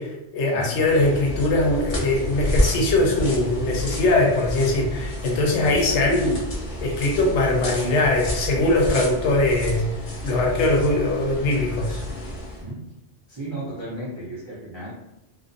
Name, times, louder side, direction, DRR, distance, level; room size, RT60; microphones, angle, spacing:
voice 1, 0.0-6.4 6.8-9.9 10.2-12.0, left 2 dB, 75° left, 0 dB, 0.9 m, -21 dB
sound 1, 0.7-12.7, left 1 dB, 50° left, 0.7 m, -30 dB
voice 2, 5.6-5.9 12.6-12.8 13.3-14.9, right 1 dB, 45° right, -9 dB, 0.4 m, -35 dB
2.4 x 2.0 x 2.5 m, 0.91 s
omnidirectional pair, 1.2 m